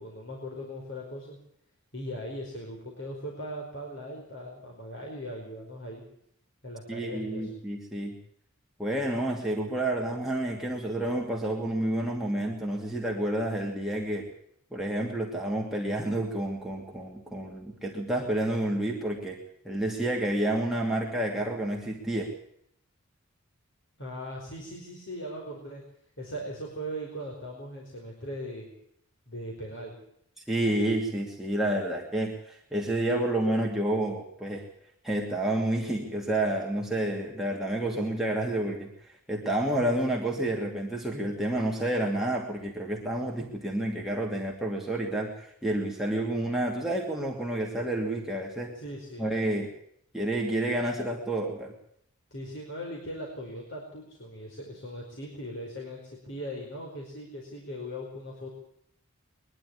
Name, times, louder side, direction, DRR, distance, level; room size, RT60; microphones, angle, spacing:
voice 1, 0.0-1.4 1.9-6.0 6.6-7.5 24.0-25.8 26.2-28.7 29.3-30.0 48.7-49.3 52.3-58.5, equal, 55° left, -1 dB, 5.1 m, -39 dB
voice 2, 6.9-8.2 8.8-14.3 14.7-19.4 19.6-22.3 30.5-34.6 35.0-38.9 39.3-48.7 49.2-49.7 50.1-51.7, right 1 dB, ahead, -2 dB, 2.6 m, -29 dB
23.0 x 11.5 x 10.0 m, 0.70 s
head